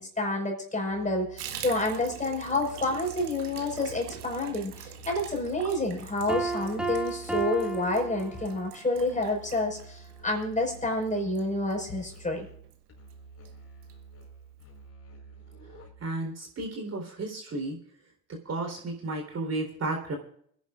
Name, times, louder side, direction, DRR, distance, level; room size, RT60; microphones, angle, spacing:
voice 1, 0.0-12.5, left 2 dB, 15° left, 1 dB, 5.1 m, -29 dB
Musical instrument, 0.9-16.2, right 4 dB, 30° left, 4.6 m, -49 dB
Water tap faucet / Bathtub (filling or washing), 1.4-12.3 12.6-12.8 13.1-13.2 13.4-13.9 14.2-14.3 14.6-14.7, right 10 dB, 85° right, 1.9 m, -45 dB
Piano, 6.3-8.8, right 3 dB, ahead, 1.9 m, -33 dB
voice 2, 16.0-17.8 18.5-20.2, right 2 dB, 35° right, 2 dB, 4.0 m, -33 dB
29.0 x 10.5 x 2.5 m, 0.63 s
hypercardioid pair, 80°, 45 cm